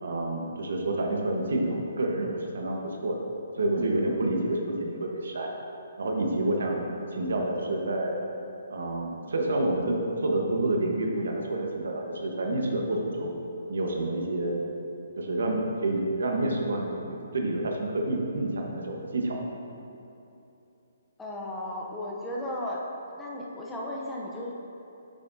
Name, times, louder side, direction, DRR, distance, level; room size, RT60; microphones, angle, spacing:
voice 1, 0.0-3.2 3.6-5.5 6.0-8.2 8.7-13.4 13.7-14.6 15.2-19.4, right 1 dB, 75° right, 1 dB, 1.1 m, -28 dB
voice 2, 21.2-22.8 23.2-24.5, left 1 dB, 5° left, -4 dB, 0.6 m, -35 dB
8.6 x 5.9 x 2.7 m, 2.8 s
hypercardioid pair, 165°, 0 cm